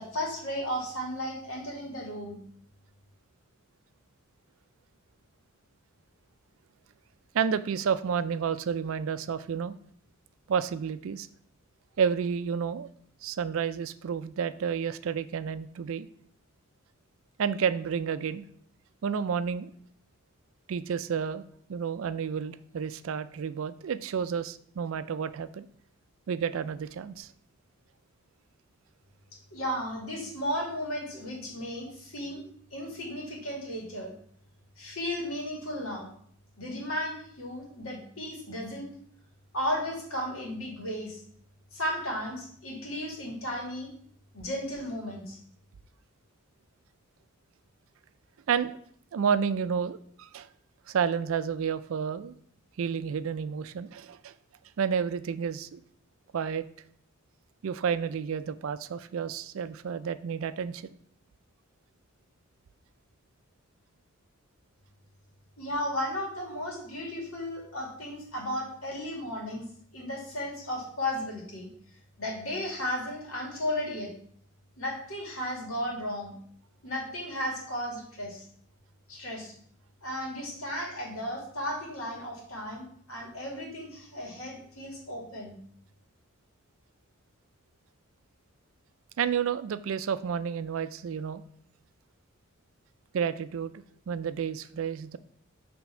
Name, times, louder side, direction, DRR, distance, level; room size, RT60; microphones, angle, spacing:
voice 1, 0.0-2.4 29.5-32.4 32.7-34.1 34.8-36.1 36.6-38.9 39.5-41.2 41.7-43.9 44.3-45.4 65.6-69.6 69.9-71.7 72.2-74.1 74.8-76.3 76.8-78.4 79.1-79.5 80.0-85.5, equal, 75° left, -1 dB, 2.1 m, -34 dB
voice 2, 7.3-9.7 10.5-11.3 12.0-12.9 13.2-16.1 17.4-18.4 19.0-19.7 20.7-21.4 21.7-25.7 26.3-27.3 48.5-48.8 49.1-50.5 50.9-52.3 52.8-54.3 54.8-55.8 56.3-56.6 57.6-60.9 89.2-91.4 93.1-95.2, right 7 dB, 65° right, 14 dB, 0.3 m, -30 dB
6.1 x 3.4 x 5.7 m, 0.62 s
head